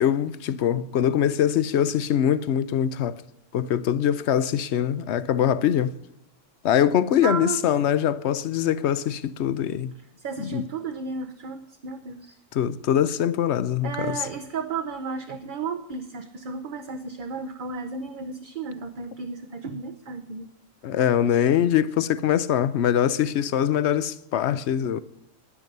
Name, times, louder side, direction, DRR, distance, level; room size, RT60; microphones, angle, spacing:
voice 1, 0.0-3.2 3.5-5.9 6.6-9.9 10.4-10.6 12.5-14.2 20.8-25.0, left 9 dB, 65° left, 0.9 m, -23 dB
voice 2, 7.2-7.6 10.2-12.4 13.8-20.5, right 4 dB, 45° right, 0.8 m, -33 dB
10.5 x 9.9 x 6.6 m
omnidirectional pair, 1.3 m